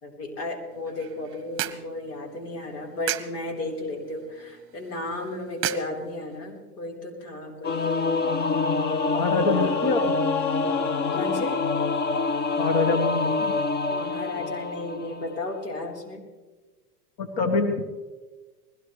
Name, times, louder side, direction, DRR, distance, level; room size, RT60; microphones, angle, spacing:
voice 1, 0.0-8.2 9.1-9.8 11.1-11.6 13.9-16.2, left 2 dB, 80° left, 1 dB, 4.4 m, -34 dB
sound 1, 0.7-6.6, right 13 dB, 30° right, 1.1 m, -37 dB
Singing / Musical instrument, 7.6-15.4, left 4 dB, 25° left, 0.7 m, -26 dB
voice 2, 9.1-10.1 12.6-13.5 17.2-17.8, left 3 dB, 50° left, 5 dB, 1.7 m, -25 dB
20.5 x 17.0 x 3.3 m, 1.3 s
hypercardioid pair, 120°, 46 cm